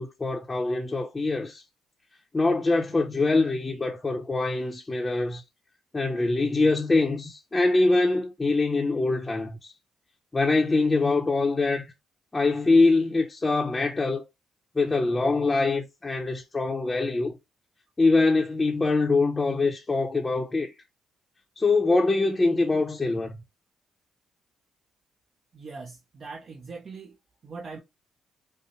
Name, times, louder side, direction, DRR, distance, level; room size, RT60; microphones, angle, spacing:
voice 1, 0.0-1.6 2.3-5.4 5.9-9.7 10.3-11.9 12.3-14.2 14.8-17.4 18.0-20.7 21.6-23.4, left 3 dB, 20° left, 0.6 m, -24 dB
voice 2, 25.5-27.1 27.4-27.8, right 4 dB, 50° right, 0.6 m, -41 dB
5.4 x 2.0 x 3.0 m
cardioid pair, 90°, 0 cm